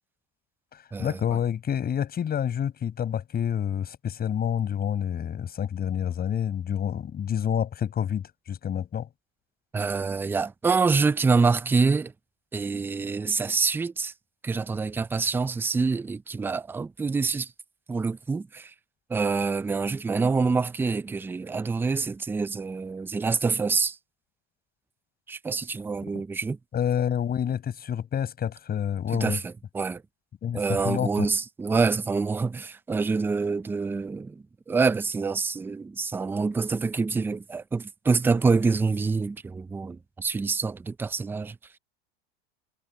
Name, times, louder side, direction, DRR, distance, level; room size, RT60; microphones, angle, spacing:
voice 1, 0.7-9.1 26.1-26.2 26.7-29.4 30.4-31.3, left 9 dB, 30° left, 5.4 m, -28 dB
voice 2, 9.7-12.1 12.5-14.1 14.4-17.5 17.9-18.7 19.1-24.0 25.3-26.6 29.1-30.0 30.5-41.6, right 4 dB, 5° right, 0.4 m, -26 dB
supercardioid pair, 120°, 33 cm